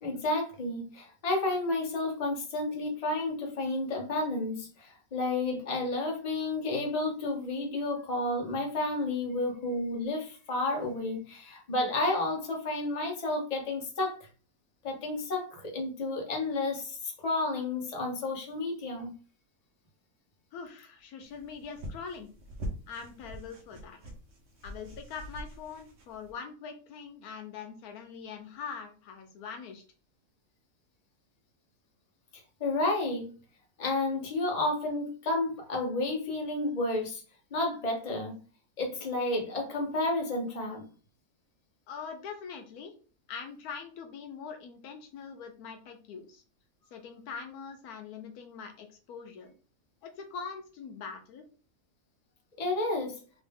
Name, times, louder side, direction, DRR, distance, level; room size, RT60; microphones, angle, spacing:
voice 1, 0.0-14.3 14.8-19.1 32.6-33.3 33.8-37.2 37.5-38.4 38.8-40.9 52.6-53.2, left 2 dB, 30° left, 0 dB, 0.9 m, -31 dB
voice 2, 20.5-22.3 22.9-24.0 24.6-29.8 41.9-42.9 43.3-46.4 46.9-49.5 50.0-51.4, left 6 dB, 80° left, 6 dB, 1.2 m, -43 dB
sound 1, 21.2-26.3, equal, 55° right, 0.9 m, -44 dB
3.1 x 2.6 x 3.4 m, 0.38 s
omnidirectional pair, 1.6 m